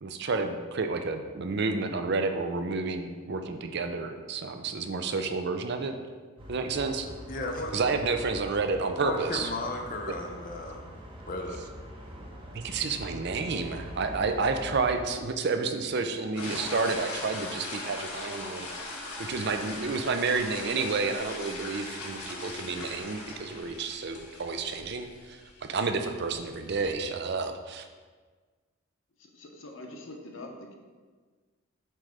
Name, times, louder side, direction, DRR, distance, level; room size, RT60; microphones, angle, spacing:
voice 1, 0.0-5.9 6.5-7.1 7.7-9.5 12.5-18.7 19.2-25.4 25.7-27.9, right 4 dB, 50° right, 6 dB, 0.5 m, -30 dB
sound 1, 6.4-15.0, equal, 25° right, 0.8 m, -43 dB
voice 2, 7.3-7.8 9.0-10.8 11.3-11.6, left 2 dB, 40° left, 2 dB, 0.6 m, -34 dB
sound 2, 16.3-26.9, left 2 dB, 85° left, 1.4 m, -40 dB
voice 3, 29.2-30.7, left 2 dB, 60° left, 2 dB, 0.9 m, -44 dB
7.5 x 3.3 x 4.9 m, 1.4 s
head